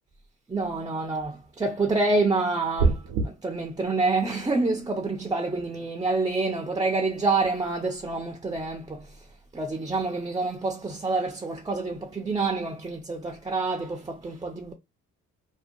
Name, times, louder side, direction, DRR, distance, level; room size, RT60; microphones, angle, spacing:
voice 1, 0.5-9.3 9.5-14.7, right 3 dB, 15° right, 0.4 m, -27 dB
sound 1, 2.8-3.3, right 4 dB, 80° right, 0.6 m, -22 dB
2.4 x 2.2 x 2.6 m
cardioid pair, 90°, 30 cm